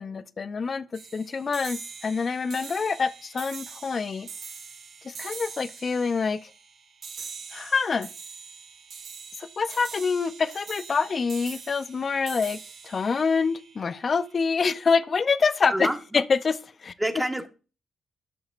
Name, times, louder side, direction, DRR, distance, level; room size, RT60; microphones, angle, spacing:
voice 1, 0.0-4.3 5.0-6.5 7.5-8.1 9.4-15.9 16.1-16.9, left 5 dB, 50° left, 0.6 m, -26 dB
sound 1, 0.9-14.4, right 5 dB, 60° right, 1.4 m, -43 dB
voice 2, 15.7-16.2 17.0-17.5, right 1 dB, 10° right, 1.5 m, -28 dB
12.5 x 5.9 x 2.5 m
hypercardioid pair, 45°, 0 cm